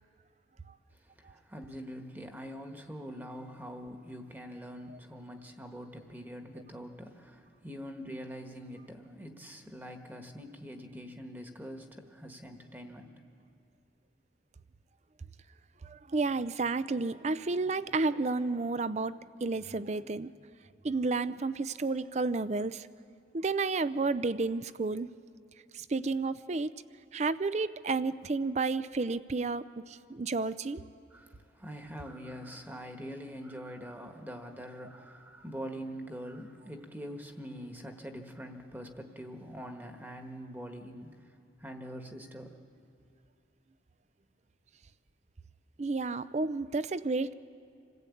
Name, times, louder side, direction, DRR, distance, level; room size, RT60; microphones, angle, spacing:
voice 1, 1.2-13.1 31.1-41.2 41.6-42.6, equal, 10° right, 4 dB, 1.3 m, -44 dB
voice 2, 15.8-20.3 20.8-22.9 23.3-25.1 25.7-26.7 27.1-30.8 45.8-47.3, right 3 dB, 35° right, 15 dB, 0.5 m, -31 dB
27.5 x 16.5 x 8.5 m, 2.5 s
head